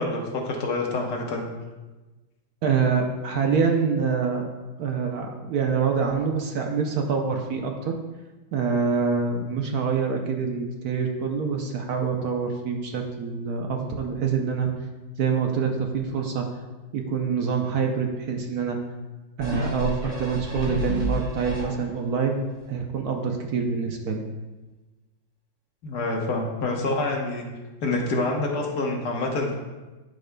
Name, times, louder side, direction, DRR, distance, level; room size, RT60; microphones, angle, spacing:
voice 1, 0.0-1.4 25.8-27.4 27.8-29.5, left 2 dB, 60° left, 0 dB, 1.5 m, -27 dB
voice 2, 2.6-4.5 4.8-7.9 8.5-14.7 15.2-16.5 16.9-18.8 19.4-22.4 22.7-24.3, right 5 dB, 65° right, 2 dB, 1.0 m, -25 dB
sound 1, 19.4-22.1 22.6-22.7, left 1 dB, 35° right, 2.3 m, -31 dB
12.0 x 4.9 x 2.2 m, 1.2 s
omnidirectional pair, 2.1 m